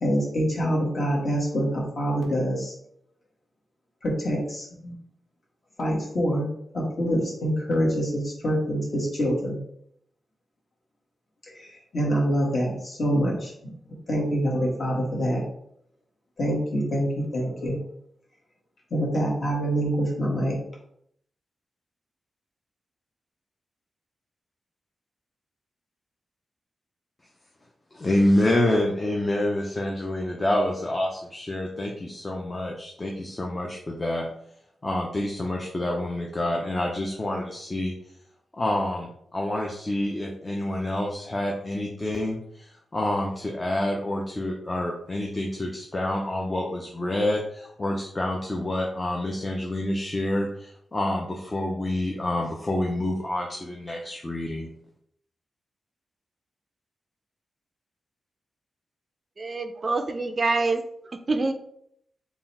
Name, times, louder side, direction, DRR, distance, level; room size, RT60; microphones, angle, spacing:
voice 1, 0.0-2.7 4.0-4.9 5.8-6.5 6.7-9.6 11.5-13.7 14.1-15.4 16.4-17.8 18.9-20.6, equal, 45° left, -3 dB, 1.5 m, -25 dB
voice 2, 27.9-34.3 34.8-37.9 38.6-54.7, left 1 dB, 25° left, 0 dB, 0.5 m, -27 dB
voice 3, 59.4-60.8 61.3-61.5, right 3 dB, 35° right, 6 dB, 0.4 m, -25 dB
3.8 x 2.3 x 4.1 m, 0.70 s
wide cardioid pair, 100°, 0 cm